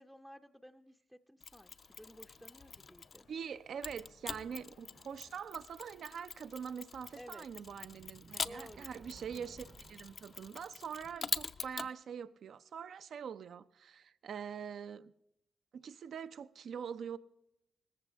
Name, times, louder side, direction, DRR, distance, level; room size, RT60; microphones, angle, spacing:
voice 1, 0.0-3.3 7.2-7.5 8.4-8.9, equal, ahead, 0.5 m, -54 dB
Mechanisms, 1.4-3.3 3.8-11.9, left 5 dB, 50° left, 0.5 m, -44 dB
sound 1, 1.7-7.4, left 4 dB, 90° left, 1.5 m, -66 dB
voice 2, 3.3-15.1 15.7-17.2, right 7 dB, 75° right, 0.5 m, -44 dB
sound 2, 7.5-11.4, right 4 dB, 45° right, 0.8 m, -59 dB
19.5 x 14.5 x 3.4 m
cardioid pair, 85°, 0 cm